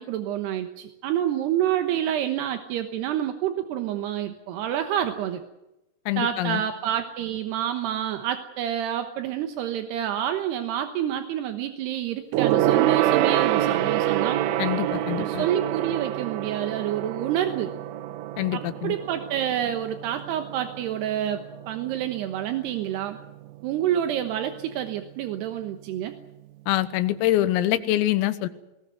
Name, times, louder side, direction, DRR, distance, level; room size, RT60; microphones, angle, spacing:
voice 1, 0.0-5.4 6.2-14.4 15.2-17.7 18.5-23.2 23.6-26.1, right 10 dB, 70° right, 7 dB, 2.7 m, -28 dB
voice 2, 6.1-6.6 14.6-15.4 18.4-18.9 26.7-28.5, left 14 dB, 80° left, 12 dB, 3.8 m, -25 dB
Gong, 12.3-22.1 22.4-22.7 23.0-23.1, right 12 dB, 90° right, 3.9 m, -26 dB
20.0 x 19.0 x 9.2 m, 0.93 s
omnidirectional pair, 6.0 m